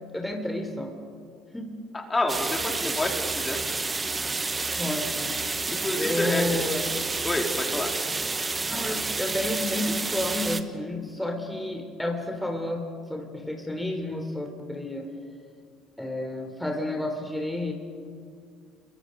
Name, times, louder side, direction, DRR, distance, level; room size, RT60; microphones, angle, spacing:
voice 1, 0.1-0.9 1.5-1.8 4.8-5.3 6.0-6.8 8.7-15.1 16.0-17.7, left 1 dB, 5° left, 3 dB, 3.5 m, -31 dB
voice 2, 2.1-3.6 5.7-6.7 7.2-7.9, left 2 dB, 20° left, 2 dB, 3.6 m, -28 dB
sound 1, 2.3-10.6, right 3 dB, 25° right, 1.4 m, -29 dB
29.0 x 23.5 x 5.3 m, 2.2 s
hypercardioid pair, 65°, 0 cm